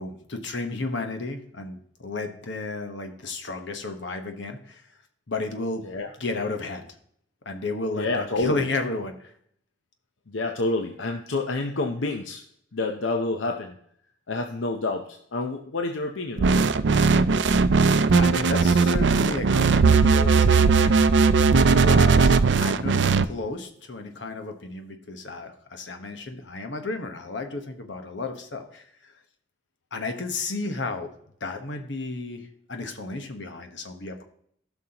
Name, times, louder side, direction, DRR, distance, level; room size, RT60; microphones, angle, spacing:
voice 1, 0.0-4.8 5.3-5.8 6.2-6.9 7.4-9.3 18.1-20.9 21.6-23.0 23.2-28.8 29.9-31.1 31.4-34.2, left 3 dB, 70° left, 6 dB, 1.2 m, -33 dB
voice 2, 8.0-8.7 10.3-12.4 12.7-13.8 14.3-16.7, left 2 dB, 85° left, 4 dB, 0.8 m, -28 dB
sound 1, 16.4-23.3, right 4 dB, 65° right, 0.4 m, -18 dB
15.0 x 6.0 x 2.9 m, 0.66 s
head